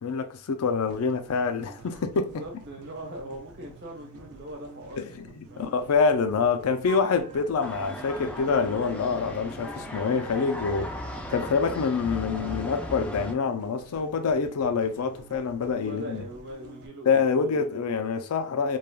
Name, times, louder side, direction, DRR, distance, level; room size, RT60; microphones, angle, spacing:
voice 1, 0.0-2.4 5.0-11.0 11.3-16.3 17.1-18.8, left 5 dB, 80° left, 0.4 m, -26 dB
sound 1, 0.9-16.9, right 3 dB, 75° right, 0.5 m, -49 dB
voice 2, 2.2-5.0 5.5-5.7 15.7-18.0, equal, 50° right, 0.9 m, -41 dB
Wind instrument woodwind instrument, 6.8-9.7, right 3 dB, 25° right, 0.7 m, -45 dB
sound 2, 7.6-13.3, left 1 dB, 5° left, 0.3 m, -37 dB
3.2 x 2.3 x 2.2 m
head